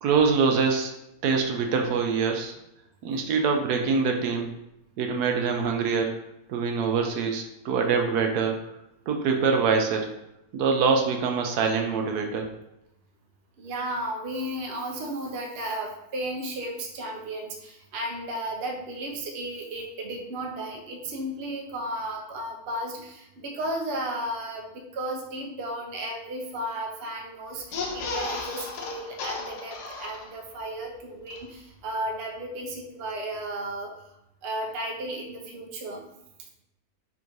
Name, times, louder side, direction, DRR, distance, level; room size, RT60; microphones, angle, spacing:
voice 1, 0.0-0.9 1.2-2.5 3.0-4.5 5.0-6.2 6.5-8.6 9.1-10.1 10.5-12.5, right 5 dB, 85° right, 3 dB, 1.1 m, -24 dB
voice 2, 13.6-33.9 34.4-36.1, right 1 dB, 55° right, 1 dB, 0.8 m, -34 dB
sound 1, 27.6-30.6 30.9-31.0 31.3-31.4, left 4 dB, 85° left, 1.2 m, -34 dB
3.6 x 2.6 x 4.5 m, 0.85 s
omnidirectional pair, 1.7 m